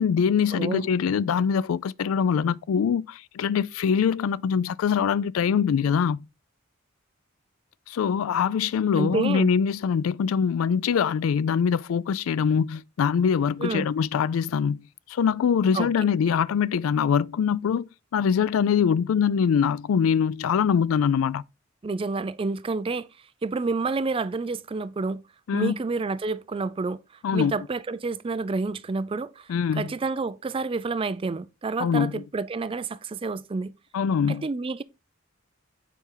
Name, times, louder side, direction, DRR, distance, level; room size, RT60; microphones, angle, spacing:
voice 1, 0.0-6.3 7.9-14.8 15.1-21.4 25.5-25.7 27.2-27.5 29.5-29.9 31.8-32.2 33.9-34.4, left 7 dB, 85° left, 0.3 m, -23 dB
voice 2, 0.5-1.1 9.0-9.5 13.6-13.9 15.7-15.9 21.8-23.1 23.4-25.2 25.5-27.0 27.3-33.7 34.3-34.8, right 3 dB, 25° right, 0.4 m, -29 dB
7.1 x 4.3 x 3.8 m
head